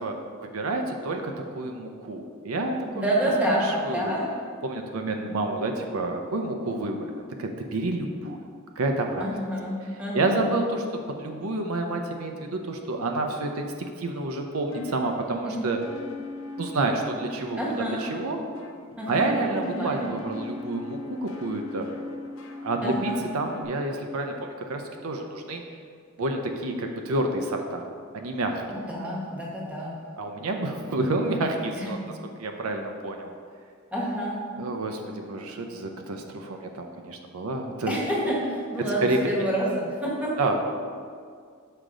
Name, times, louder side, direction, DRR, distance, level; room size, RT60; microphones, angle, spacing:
voice 1, 0.0-3.0 3.8-4.2 4.6-8.4 8.8-9.3 10.1-15.8 16.6-17.6 18.0-18.4 19.1-21.9 22.6-25.6 26.2-27.9 28.1-28.6 30.2-32.0 32.4-33.3 34.6-38.0 39.0-39.2 40.4-40.5, right 2 dB, 85° right, 4 dB, 0.6 m, -29 dB
voice 2, 2.9-4.3 9.2-10.5 15.5-15.6 17.6-18.0 19.0-20.1 22.8-23.2 28.7-29.9 31.7-32.1 33.9-34.4 37.9-40.3, right 1 dB, 5° right, -4 dB, 1.2 m, -28 dB
sound 1, 14.7-23.6, left 2 dB, 65° left, 0.7 m, -40 dB
6.6 x 4.9 x 3.8 m, 2.1 s
head